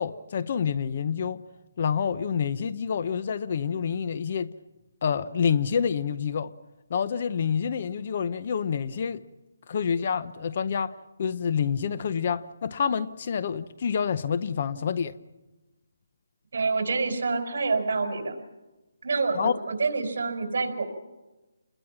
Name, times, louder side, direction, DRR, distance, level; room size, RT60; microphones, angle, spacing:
voice 1, 0.0-1.4 1.8-4.5 5.0-6.5 6.9-9.2 9.7-15.2 19.3-19.6, left 7 dB, 35° left, 0.7 m, -27 dB
voice 2, 16.5-18.4 19.0-20.8, right 4 dB, 55° right, 5.2 m, -27 dB
28.5 x 21.5 x 6.0 m
hypercardioid pair, 170°, 0 cm